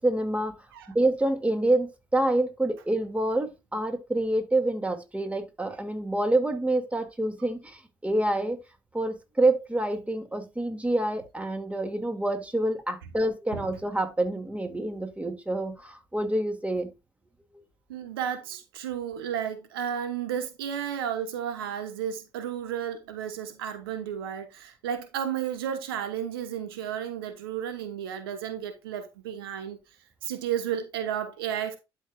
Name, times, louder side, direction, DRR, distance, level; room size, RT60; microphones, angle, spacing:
voice 1, 0.0-0.5 0.9-8.6 8.9-16.9, right 1 dB, 10° right, 2.3 m, -27 dB
voice 2, 17.9-29.8 30.2-31.8, right 9 dB, 90° right, 1.1 m, -33 dB
12.0 x 5.3 x 2.4 m
hypercardioid pair, 60°, 12 cm